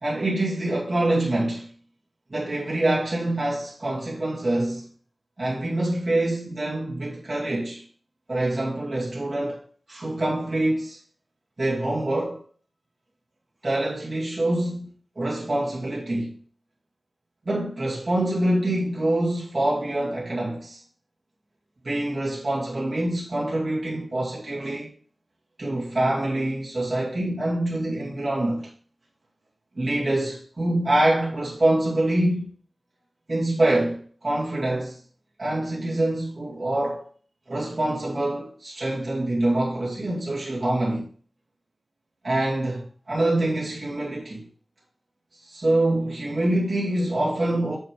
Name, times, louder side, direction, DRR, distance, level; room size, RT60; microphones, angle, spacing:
voice 1, 0.0-1.7 2.3-4.9 5.4-7.8 8.3-9.6 9.9-11.0 11.6-12.4 13.6-14.9 15.2-16.3 17.4-20.8 21.8-24.9 25.6-28.7 29.7-32.5 33.3-35.0 35.4-37.1 37.5-41.1 42.2-44.4 45.4-47.8, right 1 dB, 40° right, 2.2 m, -25 dB
6.7 x 6.5 x 3.7 m
wide cardioid pair, 90°, 0 cm